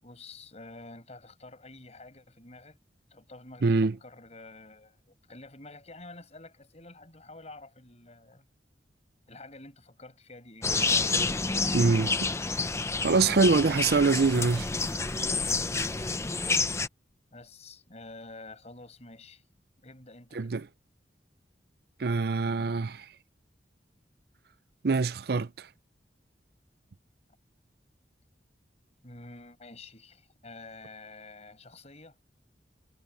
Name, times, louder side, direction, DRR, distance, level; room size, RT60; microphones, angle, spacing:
voice 1, 0.0-2.8 3.1-8.4 9.3-10.7 17.3-19.4 19.8-20.5 29.0-32.2, left 2 dB, 40° left, 6.2 m, -49 dB
voice 2, 3.6-4.0 11.7-12.3 13.0-14.7 20.4-20.7 22.0-23.1 24.8-25.7, right 4 dB, 60° right, 0.5 m, -24 dB
sound 1, 10.6-16.9, left 3 dB, 15° left, 0.6 m, -29 dB
head